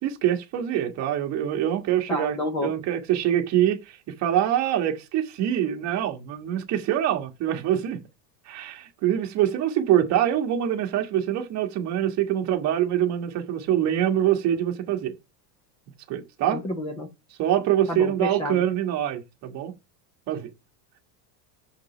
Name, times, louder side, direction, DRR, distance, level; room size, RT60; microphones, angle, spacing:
voice 1, 0.0-8.0 8.4-15.2 16.1-16.6 17.4-19.7 20.3-20.5, right 11 dB, 35° right, 1.6 m, -25 dB
voice 2, 2.1-2.7 16.5-17.1 17.9-18.7, left 1 dB, 10° left, 0.4 m, -29 dB
7.1 x 5.2 x 5.0 m
supercardioid pair, 170°, 49 cm